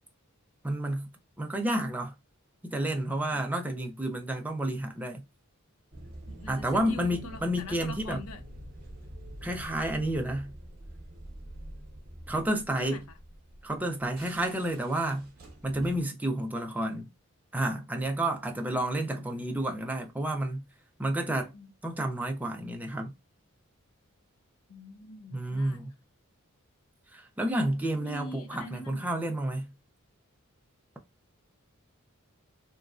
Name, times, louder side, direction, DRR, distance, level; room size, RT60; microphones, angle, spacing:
voice 1, 0.6-1.1 1.4-2.1 2.6-5.2 6.5-8.2 9.4-10.5 12.3-13.0 13.6-15.3 15.6-17.1 17.5-20.6 21.0-21.5 21.8-23.1 25.3-25.9 27.1-29.7, right 1 dB, 5° right, 0.5 m, -30 dB
sound 1, 5.9-16.0, right 1 dB, 45° right, 0.9 m, -46 dB
voice 2, 6.3-8.4 12.8-13.0 18.5-19.2 21.5-21.7 24.7-25.8 28.0-29.2, left 1 dB, 85° left, 0.5 m, -44 dB
3.0 x 2.5 x 2.3 m
head